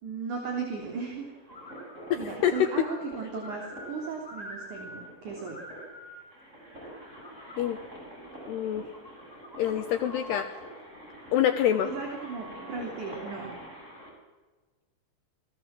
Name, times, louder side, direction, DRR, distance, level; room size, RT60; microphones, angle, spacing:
voice 1, 0.0-1.3 2.2-5.6 11.8-13.5, right 5 dB, 40° right, 1 dB, 4.3 m, -36 dB
sound 1, 0.8-14.1, right 1 dB, 15° right, 7.4 m, -46 dB
sound 2, 1.5-2.2 2.4-5.1 5.3-6.2 6.7-7.7 8.7-10.5 11.6-12.8, equal, 10° left, 4.0 m, -46 dB
voice 2, 2.1-2.5 7.6-7.8 8.5-8.8 9.6-10.5 11.3-11.9, left 10 dB, 75° left, 8 dB, 2.5 m, -26 dB
28.5 x 21.0 x 7.6 m, 1.3 s
omnidirectional pair, 5.8 m